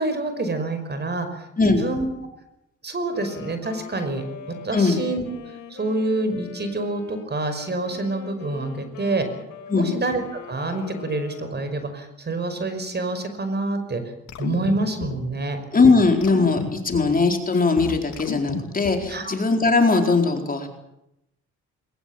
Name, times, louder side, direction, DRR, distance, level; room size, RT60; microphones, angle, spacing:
voice 1, 0.0-2.1 2.8-5.2 5.7-9.3 9.7-14.0 14.4-15.6 19.1-19.3, right 2 dB, 35° right, 9 dB, 5.5 m, -27 dB
voice 2, 1.6-1.9 4.7-5.0 9.7-9.9 15.7-20.7, left 3 dB, 30° left, 3 dB, 4.5 m, -19 dB
Wind instrument woodwind instrument, 3.0-11.9, left 6 dB, 90° left, 4.7 m, -42 dB
sound 1, 14.3-15.3 15.8-15.9 16.2-17.2 17.5-19.1, left 8 dB, 65° left, 2.9 m, -33 dB
21.5 x 20.0 x 8.9 m, 0.85 s
cardioid pair, 90°, 30 cm